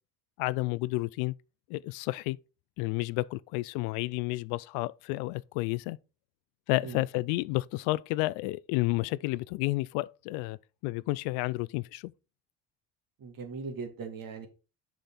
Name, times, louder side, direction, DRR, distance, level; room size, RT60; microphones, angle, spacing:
voice 1, 0.4-1.3 1.7-2.4 2.8-6.0 6.7-10.6 10.8-12.1, left 21 dB, 75° left, 0.5 m, -31 dB
voice 2, 13.2-14.5, right 4 dB, 55° right, 2.3 m, -39 dB
6.7 x 6.4 x 4.1 m
hypercardioid pair, 65°, 40 cm